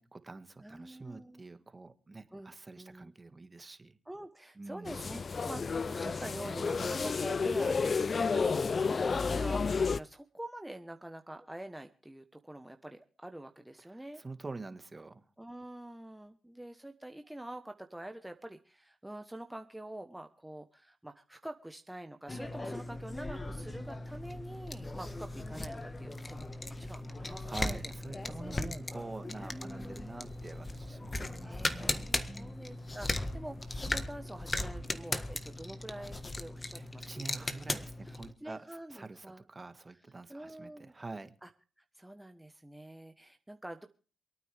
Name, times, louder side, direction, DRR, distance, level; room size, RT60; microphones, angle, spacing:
voice 1, 0.0-4.0 4.6-5.0 13.8-13.9 14.1-15.2 27.2-32.6 36.7-38.6 38.9-41.3, right 3 dB, 30° right, 10 dB, 1.7 m, -46 dB
voice 2, 0.6-1.4 2.3-3.1 4.0-14.2 15.4-26.5 26.8-27.8 29.5-30.2 31.2-37.1 37.3-37.4 38.0-39.4 40.3-40.9 41.4-41.5 41.9-43.9, right 1 dB, 10° right, 6 dB, 1.2 m, -46 dB
sound 1, 4.8-10.0, left 5 dB, 45° left, 0.6 m, -31 dB
sound 2, 22.3-38.3, left 2 dB, 30° left, 1.6 m, -38 dB
sound 3, 24.1-28.9, left 2 dB, 80° left, 4.8 m, -57 dB
27.5 x 9.2 x 3.5 m, 0.38 s
supercardioid pair, 50°, 0 cm